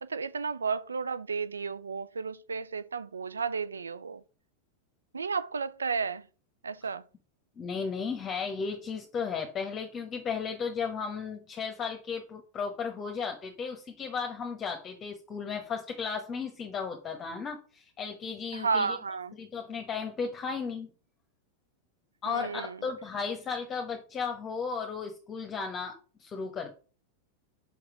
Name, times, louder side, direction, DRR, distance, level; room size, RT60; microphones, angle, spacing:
voice 1, 0.0-4.2 5.1-6.2 6.6-7.0 18.5-19.3 22.3-22.8, right 5 dB, 80° right, 0.4 m, -32 dB
voice 2, 7.6-19.0 19.3-20.9 22.2-26.7, left 5 dB, 30° left, 1.1 m, -35 dB
5.3 x 4.8 x 4.9 m
figure-of-eight pair, 90°, 0 cm